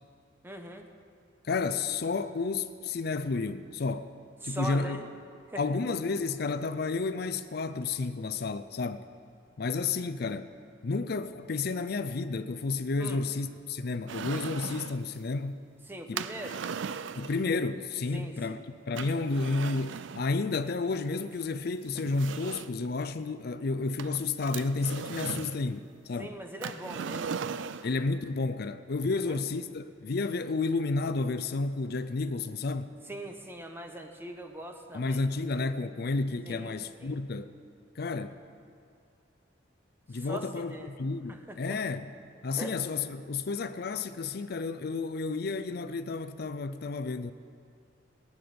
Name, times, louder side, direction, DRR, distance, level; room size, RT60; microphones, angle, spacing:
voice 1, 0.4-0.9 4.4-5.0 5.5-5.6 13.0-13.2 15.9-16.6 18.1-18.6 26.2-27.5 29.1-29.4 33.1-35.2 36.5-37.2 40.1-40.9 41.3-41.8 42.6-42.7, right 1 dB, 10° right, 1.0 m, -41 dB
voice 2, 1.4-4.1 4.4-5.0 5.6-9.1 9.6-10.5 10.8-15.6 16.1-16.2 17.2-26.4 27.8-32.9 34.9-37.5 38.0-38.4 40.1-42.1 42.4-47.3, left 3 dB, 55° left, 0.5 m, -31 dB
sound 1, 14.1-15.0 16.2-17.5 19.0-20.3 21.3-21.4 22.0-22.9 24.0-25.6 26.6-28.0, right 6 dB, 80° right, 0.4 m, -38 dB
18.5 x 9.6 x 6.9 m
head